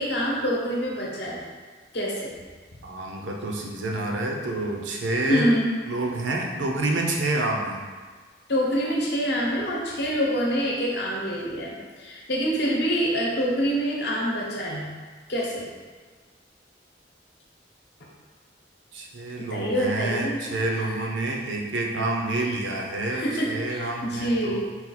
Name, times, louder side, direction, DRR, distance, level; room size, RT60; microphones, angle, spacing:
voice 1, 0.0-1.5 1.9-2.3 5.3-5.8 8.5-14.9 15.3-15.7 19.4-20.4 20.8-21.0 23.1-24.6, equal, 60° left, -3 dB, 0.8 m, -26 dB
voice 2, 2.8-5.5 5.9-7.8 18.9-24.6, right 2 dB, 80° right, 0 dB, 0.6 m, -28 dB
4.1 x 2.4 x 4.1 m, 1.5 s
head